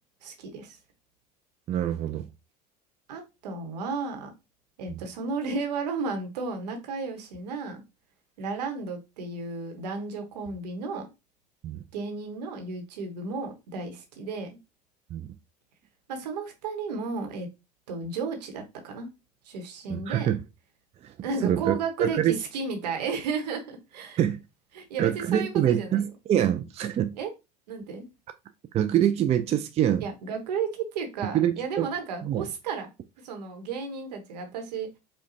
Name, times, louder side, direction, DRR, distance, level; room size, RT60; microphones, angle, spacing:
voice 1, 0.2-0.8 3.1-4.3 4.8-7.8 8.4-11.1 11.9-14.5 16.1-17.5 17.9-19.1 19.4-20.3 21.2-24.2 24.7-26.1 27.2-27.3 27.7-28.0 30.0-32.9 33.2-34.9, right 4 dB, 75° right, 1.0 m, -33 dB
voice 2, 1.7-2.3 4.9-5.0 11.6-11.8 15.1-15.3 19.9-20.4 21.0-21.1 21.4-22.3 24.2-24.4 25.0-27.1 28.7-30.0 31.3-31.9 32.2-32.5, right 10 dB, 30° right, 0.4 m, -25 dB
5.0 x 2.2 x 2.6 m
hypercardioid pair, 75°, 21 cm